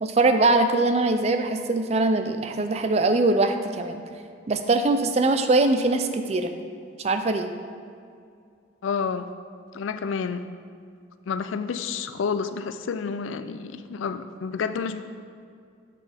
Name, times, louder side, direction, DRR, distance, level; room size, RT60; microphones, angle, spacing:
voice 1, 0.0-4.0 4.5-6.5 7.0-7.5, right 2 dB, 35° right, 8 dB, 0.4 m, -22 dB
voice 2, 8.8-9.3 9.7-10.4 11.3-15.0, left 5 dB, 85° left, 11 dB, 0.4 m, -29 dB
7.6 x 6.9 x 3.4 m, 2.4 s
head